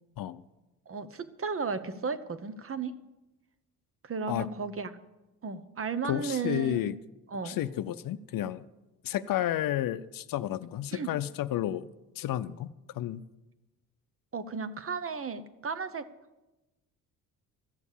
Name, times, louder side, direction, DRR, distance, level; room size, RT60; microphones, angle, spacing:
voice 1, 0.9-2.9 4.0-4.9 5.4-6.9 7.3-7.6 10.9-11.1 14.3-16.1, right 5 dB, 35° right, 13 dB, 1.0 m, -34 dB
voice 2, 6.0-6.9 7.4-8.6 9.0-11.9 12.2-13.2, left 12 dB, 60° left, 13 dB, 0.7 m, -31 dB
13.5 x 7.1 x 8.4 m, 1.0 s
supercardioid pair, 60°, 38 cm